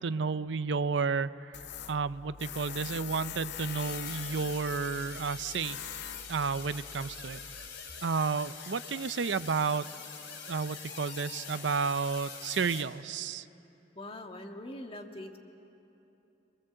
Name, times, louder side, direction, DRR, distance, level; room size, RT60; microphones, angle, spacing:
voice 1, 0.0-1.6 1.9-5.8 6.3-7.4 8.0-9.9 10.5-13.4, right 5 dB, 75° right, 14 dB, 0.6 m, -31 dB
Tools, 1.5-7.7, left 9 dB, 65° left, 0.6 m, -44 dB
sound 1, 3.8-12.8, left 6 dB, 90° left, 3.4 m, -44 dB
voice 2, 14.0-15.4, left 1 dB, 30° left, 3 dB, 1.8 m, -43 dB
27.5 x 21.0 x 7.7 m, 2.9 s
head